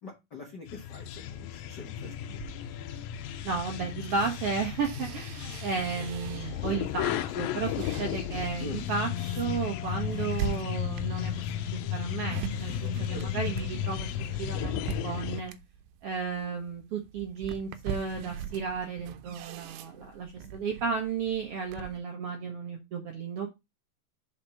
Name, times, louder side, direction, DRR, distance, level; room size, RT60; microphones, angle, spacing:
voice 1, 0.0-2.1 8.6-8.8 13.1-13.3, left 3 dB, 65° left, 0 dB, 1.0 m, -43 dB
sound 1, 0.7-15.4, left 10 dB, 90° left, 2.4 m, -34 dB
sound 2, 2.3-6.8 7.3-22.0, right 7 dB, 85° right, 2.5 m, -42 dB
voice 2, 3.4-14.1 14.4-15.5 16.0-23.5, right 5 dB, 65° right, 2 dB, 1.4 m, -33 dB
5.4 x 5.1 x 5.4 m, 0.23 s
omnidirectional pair, 4.1 m